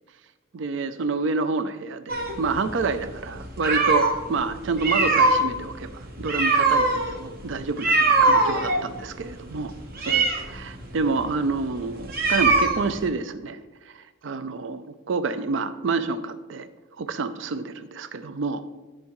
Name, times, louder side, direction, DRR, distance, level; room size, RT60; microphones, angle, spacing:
voice 1, 0.5-9.7 10.1-13.6 13.9-16.7 17.0-18.6, right 4 dB, 60° right, 12 dB, 0.4 m, -28 dB
sound 1, 2.1-4.2 4.7-13.1, right 3 dB, 45° right, 1.0 m, -22 dB
13.0 x 5.3 x 3.1 m, 1.2 s
head